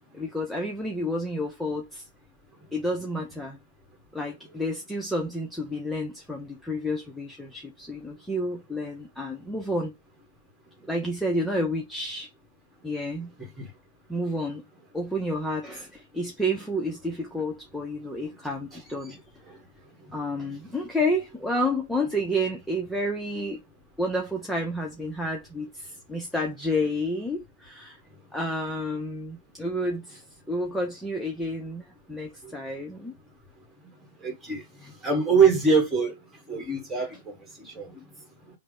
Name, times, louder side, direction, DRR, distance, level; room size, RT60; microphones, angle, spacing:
voice 1, 0.1-2.1 2.7-3.6 4.1-9.9 10.9-12.3 12.8-13.3 14.1-14.6 14.9-19.2 20.1-23.6 24.0-28.0 28.3-30.2 30.5-33.2 34.8-34.9 37.0-37.1, equal, 5° left, 0.5 m, -30 dB
voice 2, 34.2-34.6 35.0-36.1 36.5-37.2 37.6-38.0, right 5 dB, 15° right, 1.4 m, -23 dB
3.3 x 2.0 x 3.7 m
hypercardioid pair, 115°, 0 cm